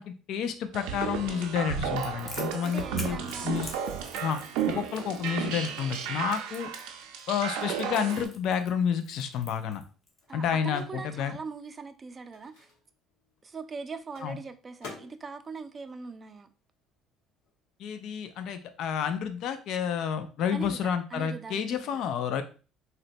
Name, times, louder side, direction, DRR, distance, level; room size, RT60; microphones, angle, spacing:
voice 1, 0.0-3.7 4.2-4.4 4.7-6.7 7.3-9.8 10.3-11.4 14.2-14.4 17.8-22.4, left 7 dB, 65° left, 0.3 m, -30 dB
sound 1, 0.7-8.3, right 8 dB, 90° right, 0.5 m, -33 dB
Crackle, 2.0-10.2, left 2 dB, 30° left, 0.8 m, -46 dB
voice 2, 2.6-3.5 10.3-12.7 13.4-16.5 20.5-20.8 21.1-22.0, right 4 dB, 30° right, 0.3 m, -41 dB
Microwave oven, 9.9-17.0 17.3-19.2, left 4 dB, 90° left, 0.9 m, -53 dB
3.9 x 2.1 x 2.5 m
cardioid pair, 110°, 0 cm